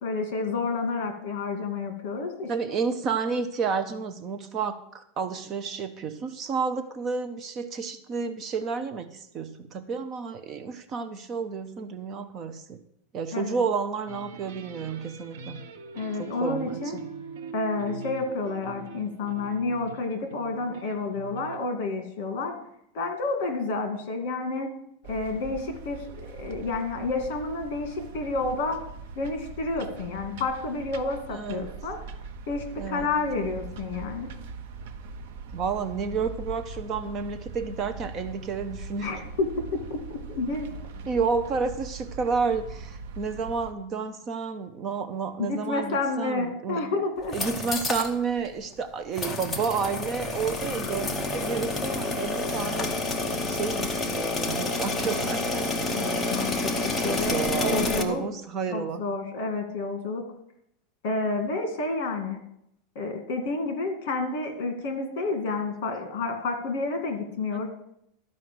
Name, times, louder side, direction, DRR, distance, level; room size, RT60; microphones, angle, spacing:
voice 1, 0.0-2.5 13.3-13.6 15.9-17.0 17.5-22.5 22.9-24.7 25.1-28.8 29.2-32.0 32.5-34.3 39.0-39.5 39.9-40.7 45.4-47.4 55.9-58.2 58.7-60.3 61.0-62.4 63.0-67.7, left 3 dB, 50° left, 6 dB, 2.2 m, -30 dB
voice 2, 2.5-12.8 13.1-15.6 16.2-17.0 31.3-31.7 32.8-33.6 35.5-39.1 41.1-46.9 47.3-55.7 57.0-59.0 67.5-67.7, right 5 dB, 25° right, 10 dB, 0.5 m, -31 dB
sound 1, 14.1-21.6, right 5 dB, 80° right, 1.1 m, -42 dB
sound 2, 25.0-43.7, right 4 dB, 60° right, 0.9 m, -41 dB
sound 3, 47.2-48.1 48.5-48.6 49.2-58.0, left 2 dB, 10° left, 0.8 m, -29 dB
12.5 x 5.2 x 7.6 m, 0.73 s
supercardioid pair, 180°, 0 cm